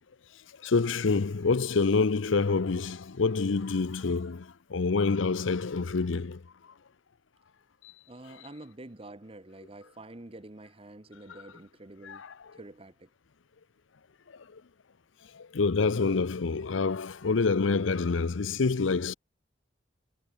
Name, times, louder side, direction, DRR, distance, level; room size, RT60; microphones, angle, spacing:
voice 1, 0.6-6.4 12.0-12.3 15.5-19.1, left 4 dB, 90° left, 0.7 m, -27 dB
voice 2, 8.1-12.2 12.5-13.1, right 2 dB, 30° right, 1.1 m, -47 dB
head